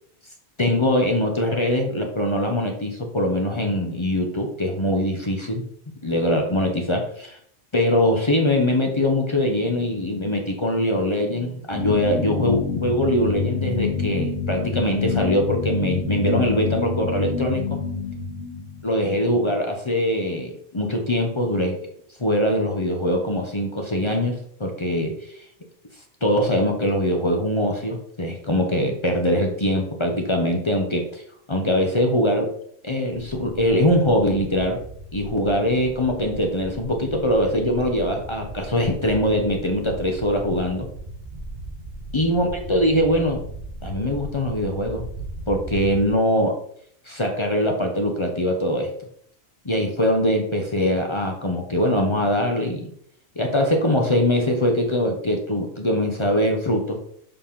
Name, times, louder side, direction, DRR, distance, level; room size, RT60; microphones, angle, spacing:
voice 1, 0.6-5.7 6.0-7.4 7.7-17.8 18.8-21.8 22.2-25.4 26.2-31.2 31.5-32.5 32.8-34.8 35.1-40.9 42.1-43.4 43.8-45.1 45.5-46.6 47.1-48.9 49.6-52.9 53.4-57.0, left 1 dB, 30° left, 2 dB, 0.9 m, -22 dB
sound 1, 11.7-18.8, left 5 dB, 65° left, 1.3 m, -27 dB
sound 2, 33.1-46.1, right 2 dB, 40° right, 1.8 m, -37 dB
6.9 x 4.1 x 3.7 m, 0.63 s
omnidirectional pair, 1.1 m